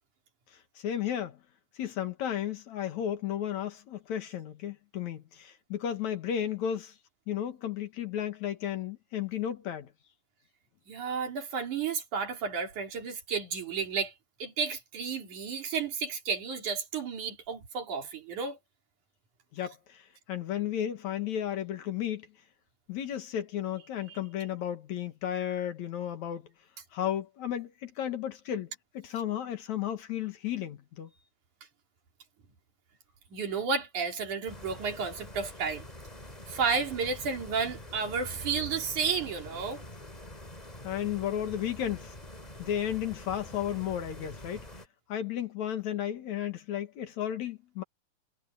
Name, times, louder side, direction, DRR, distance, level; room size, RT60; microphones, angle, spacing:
voice 1, 0.8-1.4 1.8-7.0 7.3-9.9 19.5-22.3 22.9-26.5 26.9-31.1 40.8-42.1 42.6-44.7 45.1-47.8, left 10 dB, 65° left, 2.9 m, -33 dB
voice 2, 10.9-14.1 14.4-18.6 33.3-35.8 36.5-39.8, right 5 dB, 70° right, 4.8 m, -32 dB
sound 1, 34.5-44.9, left 1 dB, 10° left, 3.4 m, -46 dB
omnidirectional pair, 3.6 m